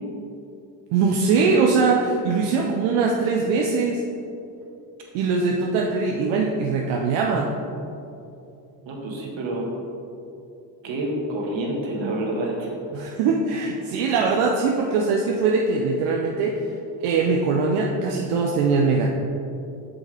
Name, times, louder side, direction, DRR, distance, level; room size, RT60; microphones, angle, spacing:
voice 1, 0.9-4.0 5.1-7.5 12.9-16.6 17.0-19.1, right 4 dB, 85° right, 0 dB, 0.8 m, -21 dB
voice 2, 8.8-9.7 10.8-12.7, right 1 dB, 60° right, -1 dB, 1.8 m, -28 dB
8.8 x 6.0 x 3.4 m, 2.8 s
supercardioid pair, 75°, 50 cm